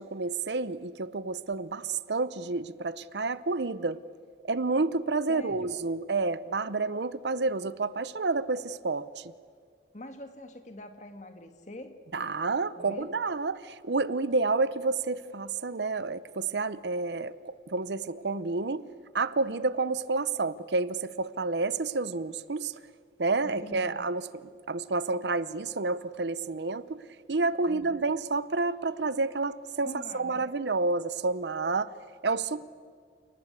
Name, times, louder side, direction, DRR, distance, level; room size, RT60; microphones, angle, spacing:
voice 1, 0.0-4.0 4.5-9.2 12.1-18.8 19.1-22.7 23.2-27.0 27.3-29.9 30.1-31.9 32.2-32.6, right 3 dB, 75° right, 16 dB, 0.8 m, -29 dB
voice 2, 5.3-5.7 9.9-12.0 12.8-13.2 23.4-24.0 27.7-28.0 29.9-30.5 32.6-32.7, left 1 dB, 40° left, 7 dB, 1.9 m, -44 dB
29.5 x 19.0 x 8.3 m, 2.1 s
head